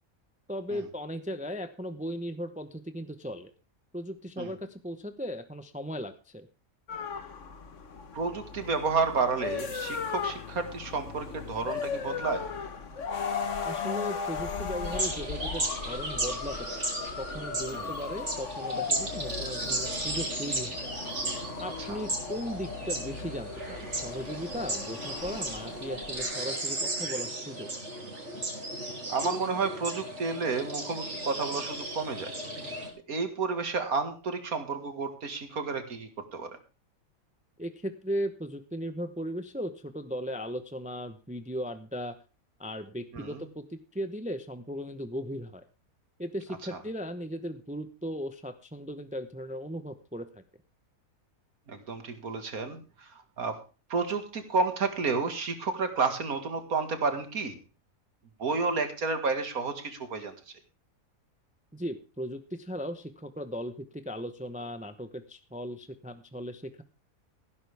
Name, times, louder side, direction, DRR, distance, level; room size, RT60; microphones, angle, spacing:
voice 1, 0.5-3.5 3.9-6.5 13.6-16.8 17.2-20.9 21.6-27.7 37.6-42.1 42.6-45.6 46.2-50.4 61.7-66.8, equal, 5° right, 9 dB, 0.8 m, -37 dB
sound 1, 6.9-26.2, left 5 dB, 55° left, 1.6 m, -37 dB
voice 2, 8.1-12.5 17.7-17.9 21.9-22.0 29.1-32.3 33.1-36.6 43.1-43.4 51.7-53.6 53.9-57.6 58.4-60.5, right 4 dB, 80° right, 8 dB, 2.4 m, -31 dB
sound 2, 14.8-32.9, right 1 dB, 50° right, 3.4 m, -35 dB
15.5 x 12.0 x 3.5 m, 0.33 s
omnidirectional pair, 1.5 m